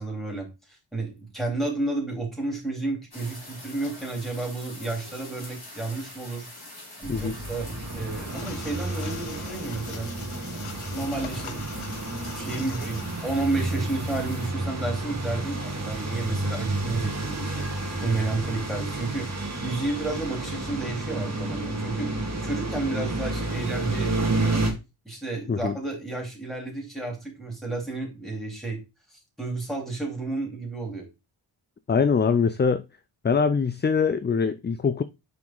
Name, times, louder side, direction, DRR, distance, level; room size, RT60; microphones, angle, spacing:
voice 1, 0.0-6.5 7.0-10.1 10.9-11.6 12.2-19.3 19.6-24.7 25.1-28.8 29.1-31.1, right 2 dB, ahead, 3.7 m, -31 dB
sound 1, 3.1-14.5, left 2 dB, 45° left, 3.5 m, -45 dB
sound 2, 7.0-24.7, right 2 dB, 30° right, 2.2 m, -31 dB
sound 3, 8.3-13.6, left 8 dB, 80° left, 0.8 m, -44 dB
voice 2, 31.9-32.8 33.2-35.0, left 5 dB, 25° left, 0.4 m, -23 dB
5.9 x 4.6 x 3.8 m
cardioid pair, 60°, 50 cm